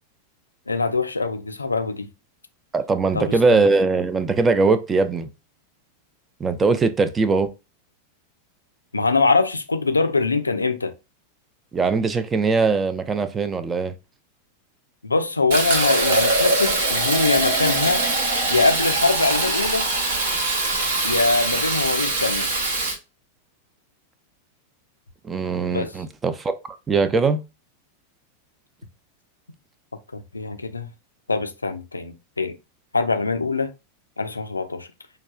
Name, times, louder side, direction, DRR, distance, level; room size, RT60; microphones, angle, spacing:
voice 1, 0.7-2.1 3.1-3.6 8.9-10.9 15.0-18.0 18.5-19.9 21.0-22.5 25.7-25.9 30.1-30.9 31.3-32.5 32.9-33.7 34.2-34.9, left 3 dB, 80° left, 0.4 m, -23 dB
voice 2, 2.7-5.3 6.4-7.5 11.7-13.9 25.2-26.5 26.9-27.4, right 4 dB, 20° right, 0.4 m, -21 dB
Fill (with liquid), 15.5-23.0, right 2 dB, 55° right, 0.8 m, -22 dB
4.6 x 2.3 x 2.3 m
figure-of-eight pair, 90°, 0 cm